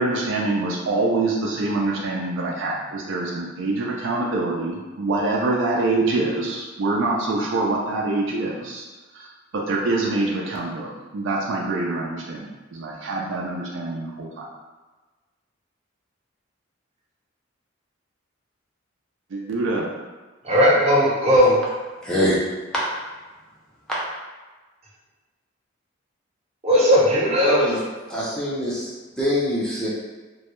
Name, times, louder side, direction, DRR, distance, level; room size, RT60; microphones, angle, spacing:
voice 1, 0.0-8.8 9.1-9.3 9.5-14.4 19.3-19.9, right 2 dB, 65° right, -2 dB, 0.4 m, -25 dB
voice 2, 20.4-21.5 26.6-27.6, equal, 30° right, -6 dB, 0.7 m, -17 dB
voice 3, 22.0-22.4 27.4-27.8 28.1-29.9, equal, 5° left, -8 dB, 0.4 m, -24 dB
2.2 x 2.1 x 2.9 m, 1.3 s
head